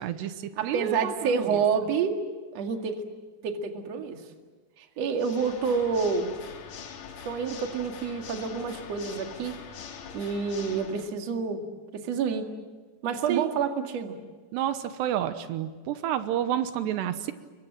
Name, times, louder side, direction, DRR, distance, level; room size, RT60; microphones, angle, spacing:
voice 1, 0.0-1.6 13.3-13.5 14.5-17.3, right 11 dB, 85° right, 10 dB, 3.2 m, -30 dB
voice 2, 0.6-2.1 2.5-3.0 3.4-4.2 4.8-6.3 7.2-9.5 10.1-11.6 11.9-12.5 13.0-14.2, right 6 dB, 45° right, 4 dB, 2.7 m, -28 dB
Water / Mechanisms, 5.1-11.1, left 7 dB, 55° left, 2.5 m, -43 dB
28.5 x 23.5 x 7.6 m, 1.4 s
omnidirectional pair, 4.9 m